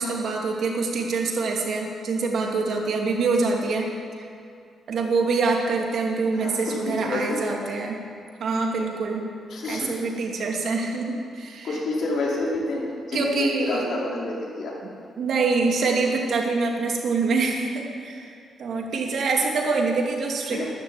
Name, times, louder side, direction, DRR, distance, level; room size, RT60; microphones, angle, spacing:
voice 1, 0.0-3.9 4.9-8.0 8.4-9.3 9.7-11.8 13.1-13.9 15.2-18.3 18.6-20.6, right 4 dB, 65° right, 0 dB, 2.6 m, -25 dB
voice 2, 6.3-7.6 9.5-9.9 11.6-14.7 20.5-20.6, left 2 dB, 65° left, -4 dB, 4.6 m, -28 dB
12.0 x 12.0 x 8.7 m, 2.4 s
cardioid pair, 125°, 0 cm